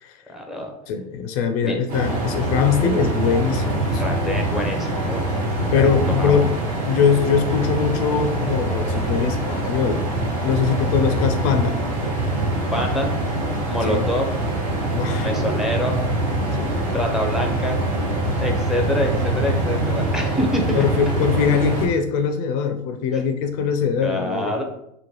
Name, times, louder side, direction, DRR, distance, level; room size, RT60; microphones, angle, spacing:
voice 1, 0.3-0.7 1.6-1.8 4.0-6.5 12.7-13.1 13.7-14.3 15.2-16.0 16.9-17.8 18.4-20.9 23.1-23.3 24.0-24.6, equal, ahead, 2 dB, 0.5 m, -26 dB
voice 2, 0.9-4.2 5.7-6.5 6.9-10.0 10.4-11.8 13.9-14.0 14.9-15.3 16.5-16.9 20.7-24.5, left 6 dB, 60° left, 7 dB, 0.4 m, -22 dB
sound 1, 1.9-21.9, right 1 dB, 55° right, 1.0 m, -24 dB
3.0 x 2.1 x 2.9 m, 0.77 s
hypercardioid pair, 95°, 21 cm